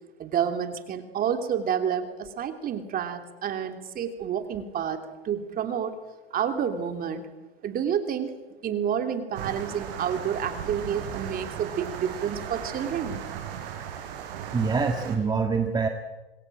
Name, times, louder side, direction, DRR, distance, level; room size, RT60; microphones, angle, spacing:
voice 1, 0.2-6.0 6.3-7.3 7.6-8.3 8.6-13.2, right 8 dB, 30° right, 7 dB, 3.1 m, -29 dB
sound 1, 9.3-15.2, right 9 dB, 65° right, 5.7 m, -37 dB
voice 2, 14.5-15.9, right 5 dB, 15° right, 4 dB, 1.8 m, -25 dB
26.5 x 21.0 x 7.6 m, 1.2 s
hypercardioid pair, 125°, 30 cm